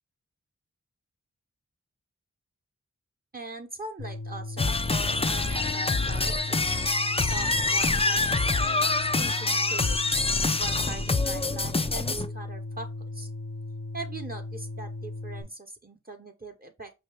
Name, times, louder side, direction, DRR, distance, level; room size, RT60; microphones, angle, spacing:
voice 1, 3.3-6.6 7.2-10.0 10.6-13.3 13.9-16.9, right 2 dB, 30° right, 0.8 m, -41 dB
sound 1, 4.0-15.4, left 2 dB, 65° left, 1.0 m, -37 dB
sound 2, 4.6-12.3, left 3 dB, 20° left, 0.4 m, -26 dB
5.3 x 2.7 x 3.4 m
wide cardioid pair, 75°, 31 cm